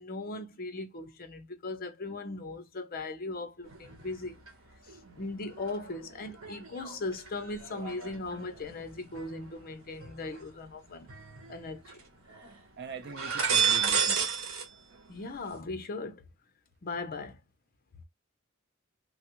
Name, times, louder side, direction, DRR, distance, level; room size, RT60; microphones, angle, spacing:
voice 1, 0.0-4.4 4.9-11.1 11.5-12.0 15.1-16.2 16.8-17.4, left 2 dB, 45° left, 0.6 m, -38 dB
sound 1, 3.6-4.5 4.9-10.5 11.1-12.0 12.3-12.6 13.0-14.7 14.9-15.6, right 6 dB, 80° right, 1.1 m, -33 dB
voice 2, 12.8-14.3, right 4 dB, 55° right, 0.7 m, -42 dB
3.3 x 2.3 x 2.9 m
head